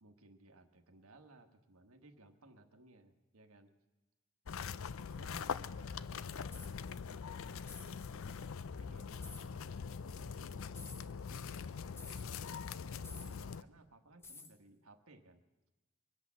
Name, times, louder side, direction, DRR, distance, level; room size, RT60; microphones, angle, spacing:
voice 1, 0.0-3.7 5.1-5.7 6.2-6.8 7.3-10.6 11.3-12.4 12.6-15.4, right 2 dB, 90° right, 6 dB, 1.3 m, -62 dB
sound 1, 4.5-13.6, left 6 dB, 75° left, 0.5 m, -43 dB
sound 2, 6.5-6.8 7.6-7.9 9.2-9.5 10.7-11.1 12.0-12.3 13.0-13.4 14.2-14.5, left 3 dB, 10° left, 0.8 m, -52 dB
23.0 x 8.3 x 7.2 m, 1.1 s
head